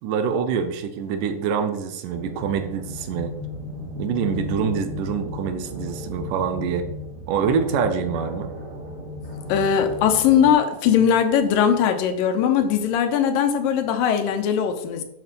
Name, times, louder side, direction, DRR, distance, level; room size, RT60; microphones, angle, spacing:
voice 1, 0.0-3.3 4.0-6.9 7.3-8.5, right 7 dB, 80° right, 8 dB, 2.4 m, -25 dB
sound 1, 2.1-10.5, left 3 dB, 65° right, 5.2 m, -35 dB
voice 2, 9.5-15.0, left 8 dB, 90° left, 7 dB, 2.7 m, -20 dB
9.3 x 5.8 x 5.3 m, 0.85 s
omnidirectional pair, 3.8 m